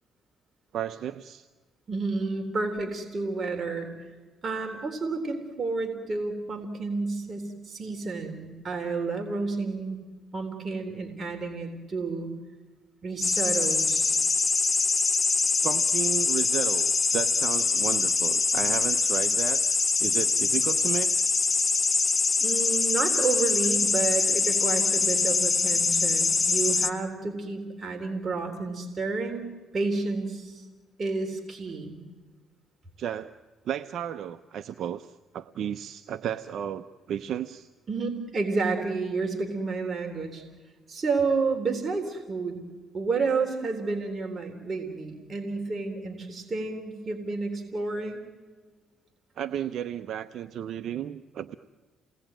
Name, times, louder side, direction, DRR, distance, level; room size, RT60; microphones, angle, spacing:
voice 1, 0.7-1.5 15.6-19.6 20.0-21.1 33.0-33.3 33.6-37.7 49.4-51.5, right 9 dB, 70° right, 10 dB, 0.8 m, -33 dB
voice 2, 1.9-4.1 4.4-10.0 10.3-12.3 13.0-14.2 22.4-30.7 31.0-32.0 37.9-40.4 40.9-42.6 42.9-48.2, right 4 dB, 35° right, 3 dB, 3.7 m, -30 dB
sound 1, 13.2-26.9, left 4 dB, 30° left, 1.6 m, -24 dB
29.0 x 19.5 x 9.1 m, 1.4 s
cardioid pair, 90°, 0 cm